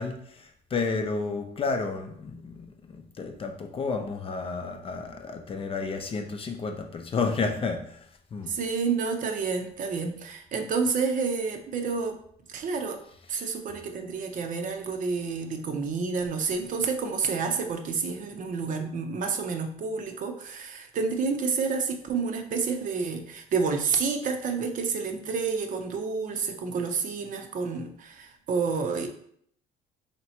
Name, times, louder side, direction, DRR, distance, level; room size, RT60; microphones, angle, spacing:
voice 1, 0.0-8.0 8.3-8.6 13.4-13.5, left 4 dB, 35° left, 5 dB, 0.5 m, -31 dB
voice 2, 8.5-12.2 12.5-13.0 13.3-29.1, right 5 dB, 50° right, 5 dB, 0.6 m, -29 dB
3.3 x 2.9 x 4.2 m, 0.65 s
cardioid pair, 110°, 17 cm